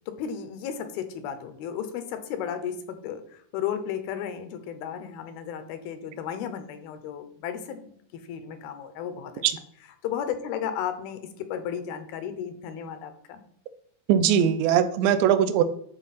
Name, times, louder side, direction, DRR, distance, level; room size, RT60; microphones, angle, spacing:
voice 1, 0.1-9.4 10.0-13.4, left 8 dB, 80° left, 9 dB, 2.6 m, -34 dB
voice 2, 14.1-15.6, right 9 dB, 80° right, 11 dB, 2.5 m, -20 dB
11.5 x 4.3 x 4.2 m, 0.67 s
omnidirectional pair, 4.5 m